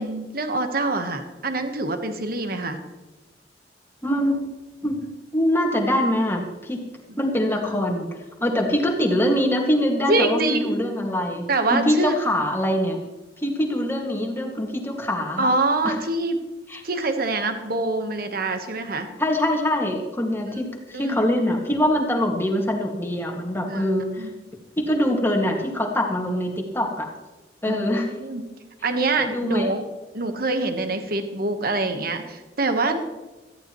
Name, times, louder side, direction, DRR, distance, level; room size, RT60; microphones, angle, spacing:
voice 1, 0.0-2.8 7.1-7.2 7.7-7.8 10.1-10.7 11.5-12.2 15.4-16.4 16.8-19.1 20.9-21.2 23.7-23.9 24.2-24.3 27.6-28.4 28.8-29.8 30.1-33.0, right 2 dB, 60° right, 7 dB, 1.3 m, -25 dB
voice 2, 4.0-4.5 4.8-6.8 7.2-8.1 8.4-13.0 13.4-15.5 15.9-16.0 16.7-16.8 19.2-24.3 24.8-27.1 27.6-28.1 29.2-29.7, left 1 dB, 15° left, 1 dB, 2.0 m, -23 dB
17.0 x 14.0 x 3.1 m, 1.1 s
head